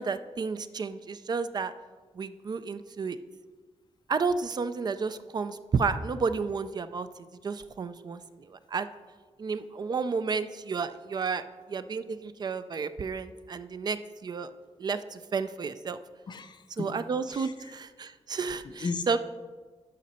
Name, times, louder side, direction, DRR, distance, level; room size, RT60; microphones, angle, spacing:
voice 1, 0.0-1.7 2.1-3.2 4.1-7.1 7.4-8.9 9.4-14.5 14.8-16.0 16.8-19.2, right 5 dB, 35° right, 12 dB, 0.4 m, -31 dB
voice 2, 16.3-16.9 17.3-17.5 18.8-19.2, left 4 dB, 40° left, 7 dB, 0.6 m, -35 dB
12.5 x 5.2 x 4.3 m, 1.4 s
wide cardioid pair, 170°, 12 cm